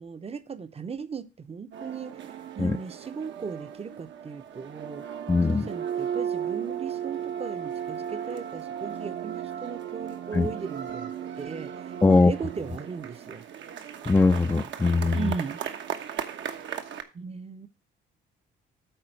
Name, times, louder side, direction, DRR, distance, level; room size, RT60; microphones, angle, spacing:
voice 1, 0.0-2.1 2.6-5.1 5.5-13.4 15.1-15.6 17.1-17.7, right 5 dB, 30° right, 0.8 m, -37 dB
sound 1, 1.7-17.0, right 9 dB, 70° right, 1.2 m, -36 dB
voice 2, 5.3-5.7 10.3-10.5 12.0-12.3 14.1-15.3, left 3 dB, 15° left, 0.5 m, -21 dB
8.9 x 4.1 x 6.5 m
cardioid pair, 90°, 20 cm